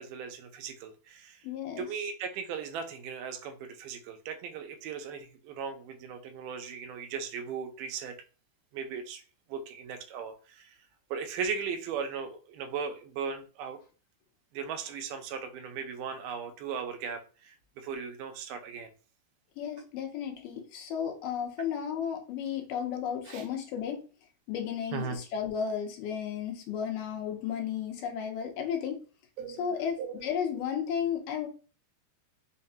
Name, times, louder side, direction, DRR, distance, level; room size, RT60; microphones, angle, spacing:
voice 1, 0.0-1.4 1.8-8.1 8.7-9.2 9.5-10.8 11.1-13.8 14.5-18.9 23.3-23.5 24.9-25.2 29.4-29.7 30.0-30.3, right 6 dB, 85° right, 6 dB, 2.2 m, -37 dB
voice 2, 1.4-1.9 19.6-24.0 24.5-29.0 29.6-31.5, left 8 dB, 80° left, 3 dB, 2.4 m, -33 dB
5.6 x 2.2 x 2.8 m, 0.36 s
omnidirectional pair, 3.7 m